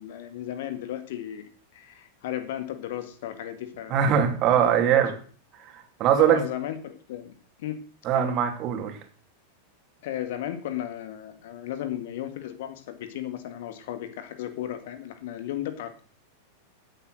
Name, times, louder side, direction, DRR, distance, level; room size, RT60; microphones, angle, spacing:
voice 1, 0.0-4.0 4.5-5.0 6.2-7.3 7.6-7.8 8.1-8.3 10.0-16.0, left 11 dB, 55° left, 10 dB, 2.0 m, -35 dB
voice 2, 3.9-5.1 6.0-6.4 8.0-9.0, right 9 dB, 35° right, 5 dB, 2.9 m, -21 dB
15.5 x 8.3 x 6.4 m, 0.42 s
figure-of-eight pair, 90°, 0 cm